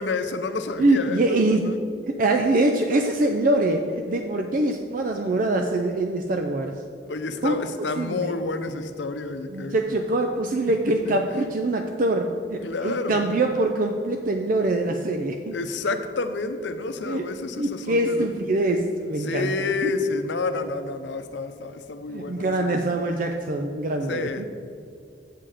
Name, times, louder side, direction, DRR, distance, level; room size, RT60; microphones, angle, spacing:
voice 1, 0.0-1.8 7.1-10.0 12.6-13.3 15.5-18.3 19.2-22.7 24.1-24.5, left 3 dB, 85° left, 9 dB, 0.7 m, -29 dB
voice 2, 0.8-1.7 2.1-6.7 7.4-7.5 8.0-8.3 9.5-15.5 17.0-17.3 17.6-19.9 22.1-24.5, right 2 dB, 50° right, 4 dB, 0.5 m, -24 dB
7.8 x 7.5 x 5.0 m, 2.4 s
head